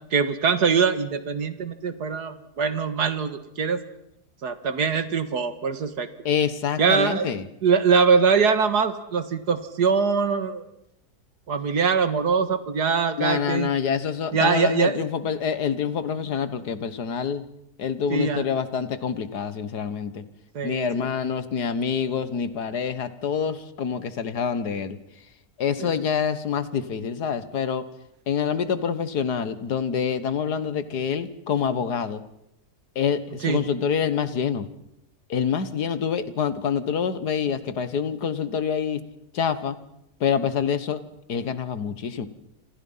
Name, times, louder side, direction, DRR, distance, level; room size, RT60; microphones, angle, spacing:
voice 1, 0.1-3.8 4.4-6.1 6.8-7.3 7.6-10.6 11.5-13.7 14.3-15.0 18.1-18.4 20.5-21.1 25.8-25.9 33.4-33.6, right 5 dB, 80° right, 11 dB, 2.1 m, -23 dB
voice 2, 6.3-7.5 13.2-17.4 17.8-20.2 20.6-25.0 25.6-27.8 28.3-32.2 33.0-34.7 35.3-39.0 39.3-39.8 40.2-41.0 41.3-42.3, left 7 dB, 80° left, 13 dB, 2.0 m, -26 dB
28.5 x 27.5 x 5.6 m, 0.81 s
omnidirectional pair, 1.7 m